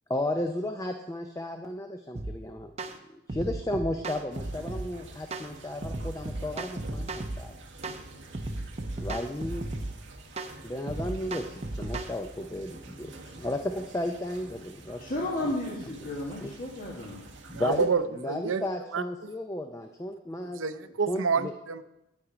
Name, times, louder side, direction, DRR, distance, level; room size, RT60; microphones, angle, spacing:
voice 1, 0.1-2.7 3.1-7.6 9.0-9.7 10.6-15.0 15.4-15.5 16.4-16.5 17.5-17.9 18.2-20.6 21.1-21.5, left 1 dB, 15° left, 5 dB, 0.4 m, -34 dB
sound 1, 2.2-2.4 2.8-3.0 3.3-4.9 5.3-5.5 5.8-7.4 7.8-8.0 8.3-10.0 10.4-10.5 10.9-12.1, right 2 dB, 30° right, 0.7 m, -35 dB
sound 2, 4.3-17.9, right 2 dB, 60° right, 1.3 m, -48 dB
voice 2, 15.0-17.2, left 1 dB, 45° left, -4 dB, 1.4 m, -33 dB
voice 3, 17.5-18.0 18.3-18.6 18.9-19.0 20.5-21.8, right 5 dB, 75° right, 11 dB, 0.6 m, -28 dB
9.4 x 8.7 x 4.9 m, 0.88 s
head